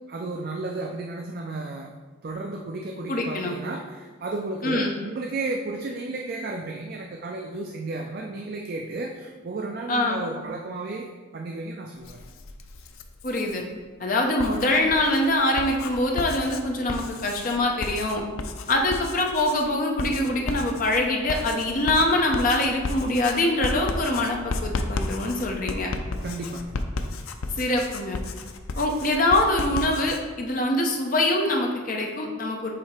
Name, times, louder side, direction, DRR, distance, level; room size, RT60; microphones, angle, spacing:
voice 1, 0.1-1.9 2.2-11.1 11.3-12.2 26.2-26.7, right 2 dB, 45° right, 1 dB, 0.4 m, -33 dB
voice 2, 3.1-3.6 4.6-5.0 9.9-10.2 13.2-13.6 14.0-18.2 18.7-25.9 27.5-28.2 28.8-32.7, left 1 dB, 40° left, 1 dB, 0.7 m, -24 dB
Writing, 12.0-13.6 14.2-30.2, left 2 dB, 85° left, 0.5 m, -33 dB
7.6 x 2.8 x 4.4 m, 1.4 s
head